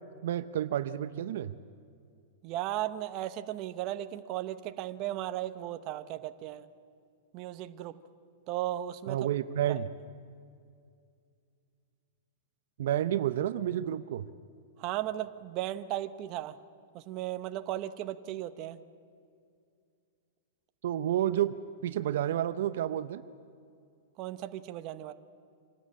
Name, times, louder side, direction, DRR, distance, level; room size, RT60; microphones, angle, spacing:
voice 1, 0.2-1.5 9.1-9.9 12.8-14.2 20.8-21.5 21.8-23.2, right 11 dB, 65° right, 13 dB, 0.6 m, -30 dB
voice 2, 2.4-6.6 7.3-8.0 8.5-9.2 9.7-9.8 14.8-16.6 16.9-18.8 24.2-25.1, right 13 dB, 35° right, 11 dB, 0.8 m, -36 dB
26.0 x 13.0 x 8.6 m, 2.4 s
hypercardioid pair, 150°, 0 cm